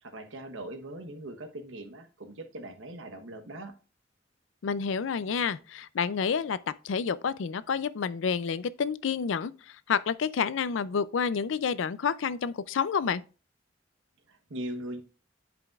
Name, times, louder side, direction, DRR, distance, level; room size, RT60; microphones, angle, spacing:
voice 1, 0.0-3.7 14.3-15.0, right 1 dB, 90° right, 1.1 m, -40 dB
voice 2, 4.6-6.6 6.8-13.2, left 6 dB, 85° left, 0.4 m, -29 dB
10.5 x 5.1 x 2.4 m
head